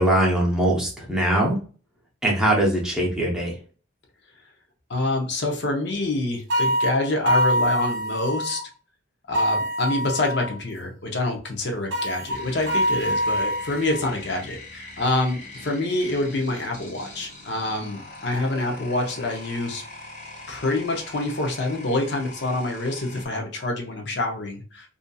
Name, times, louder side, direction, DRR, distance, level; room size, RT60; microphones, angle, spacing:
voice 1, 0.0-1.6 2.2-3.6, right 1 dB, 5° right, -3 dB, 0.6 m, -21 dB
voice 2, 4.9-8.6 9.3-19.8 20.5-24.9, left 2 dB, 55° left, 2 dB, 0.6 m, -26 dB
sound 1, 6.5-8.6 9.3-10.6 11.9-14.1, equal, 60° right, 0.4 m, -25 dB
sound 2, 12.3-23.3, left 2 dB, 35° left, 1.0 m, -42 dB
2.6 x 2.6 x 2.2 m, 0.38 s
head